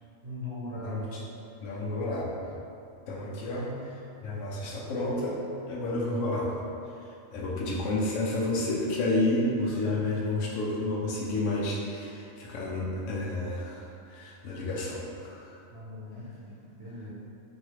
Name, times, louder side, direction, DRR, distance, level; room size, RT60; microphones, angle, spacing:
voice 1, 0.2-1.1 15.7-17.1, left 1 dB, 55° right, -7 dB, 0.8 m, -40 dB
voice 2, 0.8-1.2 1.6-2.4 3.1-5.4 5.7-6.5 7.0-15.6, left 2 dB, 75° left, -3 dB, 0.9 m, -31 dB
3.1 x 2.7 x 2.9 m, 2.6 s
omnidirectional pair, 1.3 m